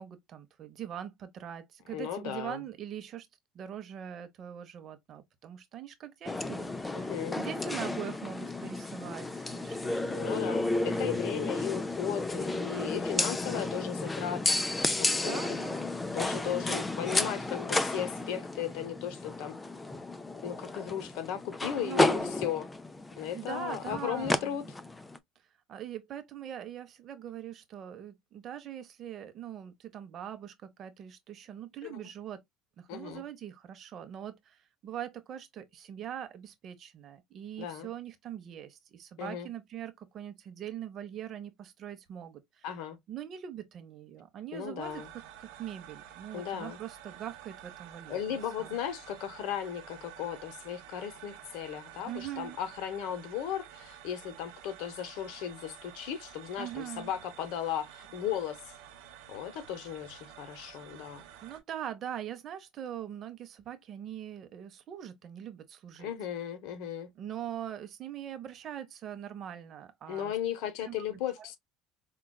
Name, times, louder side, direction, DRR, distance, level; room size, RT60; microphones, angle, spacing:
voice 1, 0.0-3.3 3.5-10.4 15.2-15.9 21.8-22.3 23.3-24.7 25.7-32.4 32.8-42.7 43.1-45.0 45.4-48.7 52.0-52.6 56.6-57.1 61.4-66.1 67.2-70.3 70.9-71.5, right 10 dB, 40° right, 0.7 m, -42 dB
voice 2, 1.9-2.6 6.9-7.4 10.1-15.4 16.1-19.6 20.3-22.7 23.2-24.6 31.8-32.0 32.9-33.2 37.6-37.9 39.2-39.5 42.6-43.0 44.5-45.1 46.3-46.8 48.1-58.6 59.3-61.2 66.0-67.1 70.1-71.6, left 9 dB, 70° left, 0.8 m, -36 dB
sound 1, 6.3-25.2, left 2 dB, 10° left, 0.3 m, -32 dB
sound 2, 44.8-61.6, right 10 dB, 85° right, 0.9 m, -50 dB
4.8 x 2.3 x 2.3 m
cardioid pair, 155°, 0 cm